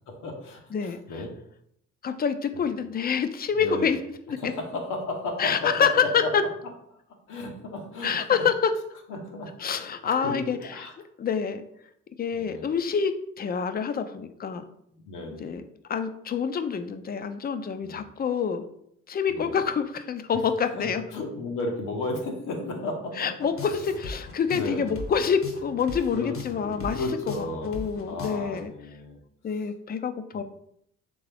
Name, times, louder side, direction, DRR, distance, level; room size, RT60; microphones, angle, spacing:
voice 1, 0.1-1.3 2.5-2.7 3.5-3.9 4.4-6.3 7.3-8.4 9.1-10.9 12.3-12.7 14.9-15.6 17.8-18.0 19.3-19.6 20.3-20.4 20.8-23.3 23.7-23.8 24.5-24.9 26.1-26.4 26.6-29.2 30.3-30.4, left 2 dB, 90° left, 2 dB, 1.0 m, -34 dB
voice 2, 2.0-4.0 4.3-4.4 5.4-6.4 8.0-8.7 9.6-10.8 11.2-11.6 12.2-14.6 15.4-15.6 15.9-18.6 19.1-21.0 23.2-27.0 27.4-28.7 29.4-30.4, left 6 dB, 30° left, 9 dB, 0.4 m, -27 dB
sound 1, 23.4-28.6, left 4 dB, 45° left, 0.8 m, -39 dB
3.7 x 3.4 x 3.4 m, 0.72 s
cardioid pair, 90°, 30 cm